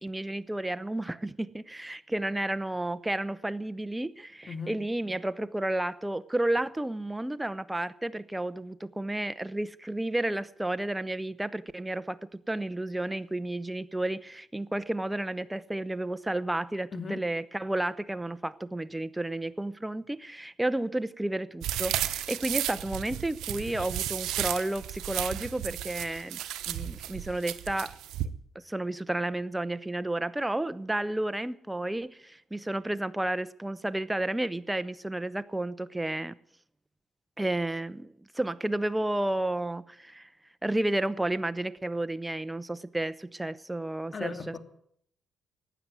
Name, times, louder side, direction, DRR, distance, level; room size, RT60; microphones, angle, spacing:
voice 1, 0.0-26.4 26.7-27.9 28.5-36.3 37.4-40.3 40.6-44.6, right 1 dB, 10° right, 0.8 m, -32 dB
sound 1, 21.6-28.3, right 12 dB, 80° right, 0.9 m, -33 dB
voice 2, 44.1-44.6, left 5 dB, 45° left, 2.7 m, -37 dB
15.0 x 9.8 x 9.4 m
supercardioid pair, 60°, 0 cm